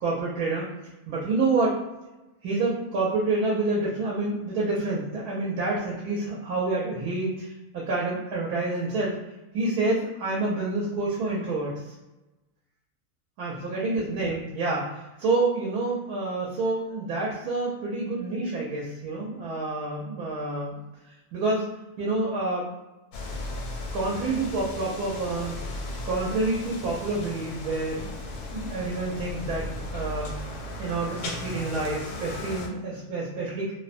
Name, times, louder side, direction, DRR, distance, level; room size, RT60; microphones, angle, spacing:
voice 1, 0.0-0.7 1.1-1.8 2.4-9.2 9.5-11.9 13.4-20.8 21.3-21.6 22.0-22.7 23.9-25.6 26.1-28.1 28.5-30.4 30.8-33.7, right 3 dB, 80° right, -5 dB, 1.1 m, -28 dB
sound 1, 23.1-32.7, left 2 dB, 85° left, 1.1 m, -36 dB
2.8 x 2.1 x 2.4 m, 1.0 s
omnidirectional pair, 1.6 m